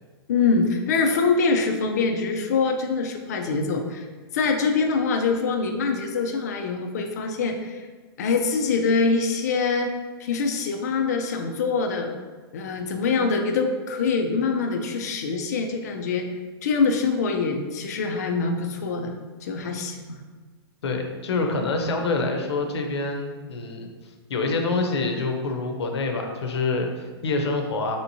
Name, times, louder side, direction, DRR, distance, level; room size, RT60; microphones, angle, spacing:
voice 1, 0.3-4.1 4.3-7.8 8.2-9.9 10.2-12.1 12.5-16.3 16.6-19.2 19.4-20.2, left 4 dB, 40° left, 4 dB, 0.3 m, -24 dB
voice 2, 20.8-23.9 24.3-28.0, left 3 dB, 85° left, 4 dB, 0.6 m, -26 dB
3.4 x 2.9 x 2.6 m, 1.4 s
hypercardioid pair, 175°, 14 cm